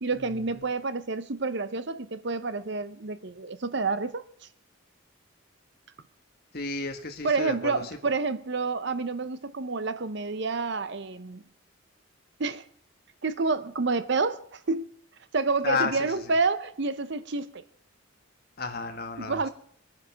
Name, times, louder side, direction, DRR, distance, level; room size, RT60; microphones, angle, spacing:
voice 1, 0.0-4.3 7.2-11.4 12.4-12.6 13.2-14.9 15.3-17.6 19.2-19.5, right 4 dB, 55° right, 0.7 m, -29 dB
voice 2, 6.5-7.8 15.6-16.1 18.6-19.5, left 4 dB, 45° left, 1.5 m, -32 dB
22.0 x 9.6 x 5.8 m
head